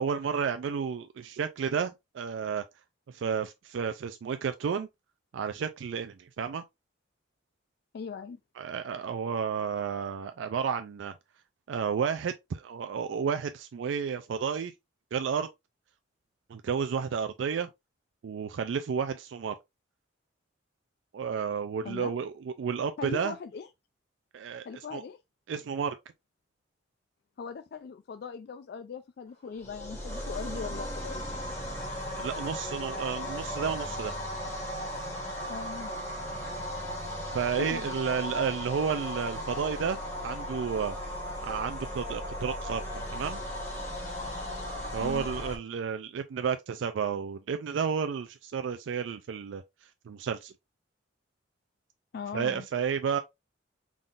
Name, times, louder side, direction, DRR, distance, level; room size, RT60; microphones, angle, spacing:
voice 1, 0.0-2.6 3.1-4.9 5.3-6.6 8.6-11.1 11.7-14.7 15.1-15.5 16.5-17.7 18.2-19.5 21.1-23.4 24.3-24.7 24.9-25.0 25.5-26.0 32.2-34.1 37.3-41.0 41.4-43.4 44.9-50.5 52.3-53.2, right 6 dB, 75° right, 0.3 m, -31 dB
voice 2, 7.9-8.4 21.8-22.1 23.0-23.7 24.7-25.2 27.4-31.3 35.5-35.9 37.6-37.9 45.0-45.3 52.1-52.7, left 6 dB, 55° left, 0.3 m, -39 dB
sound 1, 29.6-45.6, equal, 15° left, 1.5 m, -36 dB
3.9 x 3.6 x 2.4 m
head